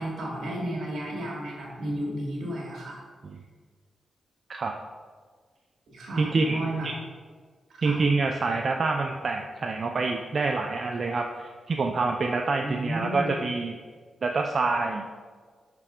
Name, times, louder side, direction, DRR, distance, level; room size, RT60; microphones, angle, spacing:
voice 1, 0.0-3.0 5.9-6.9 7.7-8.0 12.6-13.4, right 1 dB, 80° right, -3 dB, 1.8 m, -33 dB
voice 2, 6.2-6.9 7.8-13.8 14.2-15.0, right 3 dB, 55° right, 2 dB, 0.4 m, -27 dB
5.8 x 4.6 x 3.7 m, 1.5 s
cardioid pair, 70°, 0 cm